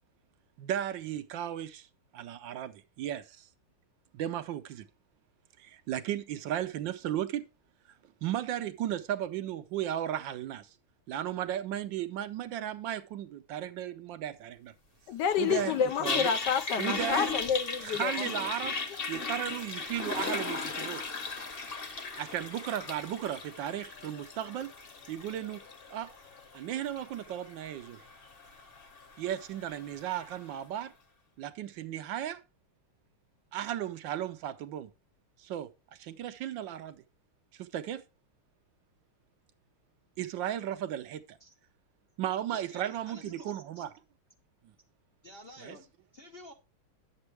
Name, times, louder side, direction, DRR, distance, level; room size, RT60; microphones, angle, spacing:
voice 1, 0.6-1.9 2.1-3.5 4.1-4.9 5.6-7.4 8.2-10.7 11.1-14.7 15.4-15.7 16.0-16.3 16.8-17.3 17.8-18.8 19.1-21.0 22.2-24.7 25.1-25.6 25.9-26.1 26.5-28.0 29.2-30.9 31.4-32.4 33.5-34.9 35.4-35.7 36.0-37.0 37.5-38.0 40.2-41.4 42.2-43.9 45.6-45.8, right 11 dB, 75° right, 1.3 m, -35 dB
voice 2, 15.1-18.3, left 8 dB, 70° left, 1.1 m, -29 dB
Toilet flush, 15.2-30.4, left 4 dB, 35° left, 1.1 m, -38 dB
voice 3, 42.5-43.8 45.2-46.5, left 1 dB, 50° left, 0.7 m, -51 dB
10.5 x 8.1 x 3.3 m
omnidirectional pair, 2.2 m